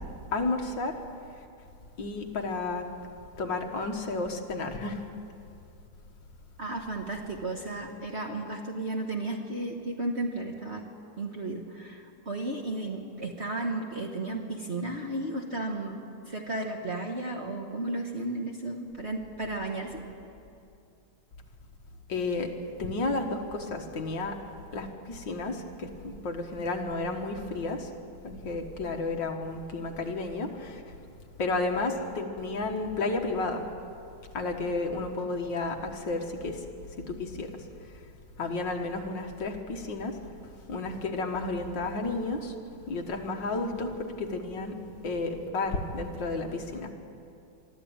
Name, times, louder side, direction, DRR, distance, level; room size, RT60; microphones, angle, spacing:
voice 1, 0.3-1.0 2.0-2.9 3.4-5.0 22.1-24.4 24.7-27.9 28.2-30.8 31.4-33.6 34.3-36.6 37.0-37.5 38.4-40.2 40.7-42.5 42.9-44.8 45.0-46.9, left 3 dB, 60° left, 3 dB, 2.1 m, -32 dB
voice 2, 6.6-10.8 11.2-20.0, right 2 dB, 35° right, 1 dB, 1.3 m, -34 dB
23.5 x 13.0 x 8.8 m, 2.6 s
omnidirectional pair, 2.4 m